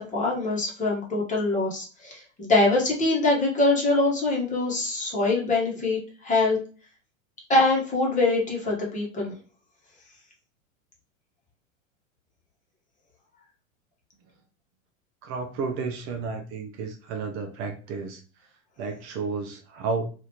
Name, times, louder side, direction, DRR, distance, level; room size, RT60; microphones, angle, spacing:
voice 1, 0.1-6.6 7.5-9.3, left 2 dB, 20° left, -3 dB, 1.0 m, -24 dB
voice 2, 15.2-18.2 18.8-20.0, right 4 dB, 35° right, 4 dB, 0.5 m, -32 dB
3.0 x 2.5 x 2.7 m, 0.38 s
hypercardioid pair, 110°, 41 cm